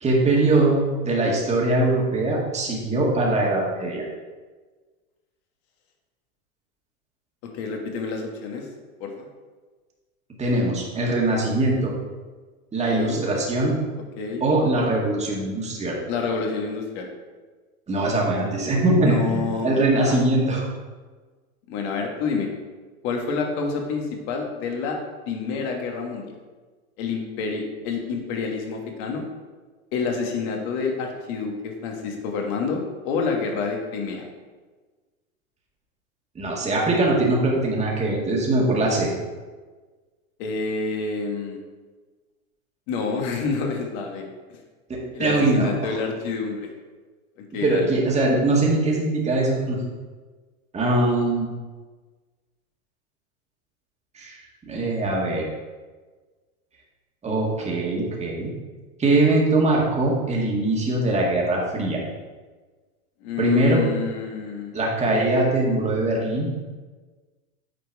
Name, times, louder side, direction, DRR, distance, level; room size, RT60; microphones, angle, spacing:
voice 1, 0.0-4.0 10.4-11.9 12.7-13.8 14.4-16.0 17.9-20.6 36.4-39.1 44.9-46.0 47.6-49.8 50.7-51.5 54.1-54.4 54.7-55.5 57.2-58.5 59.0-62.0 63.4-63.8 64.7-66.5, right 2 dB, 15° right, -3 dB, 1.9 m, -22 dB
voice 2, 7.5-8.7 9.0-9.3 12.9-13.2 14.2-14.4 16.1-17.1 19.0-20.2 21.7-22.5 23.0-25.0 25.2-26.3 27.0-29.2 29.9-34.2 40.4-41.6 42.9-44.3 45.1-46.7 47.4-47.9 63.2-65.3, left 5 dB, 50° left, 2 dB, 1.8 m, -28 dB
9.2 x 4.4 x 4.8 m, 1.4 s
hypercardioid pair, 125°, 43 cm